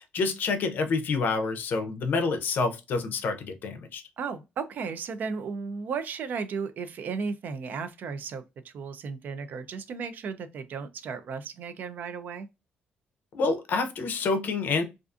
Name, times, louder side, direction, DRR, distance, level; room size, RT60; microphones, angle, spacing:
voice 1, 0.0-4.0 13.3-14.8, left 4 dB, 55° left, 0.5 m, -28 dB
voice 2, 4.2-12.5, right 5 dB, 55° right, 0.3 m, -35 dB
2.4 x 2.4 x 2.4 m
cardioid pair, 140°, 4 cm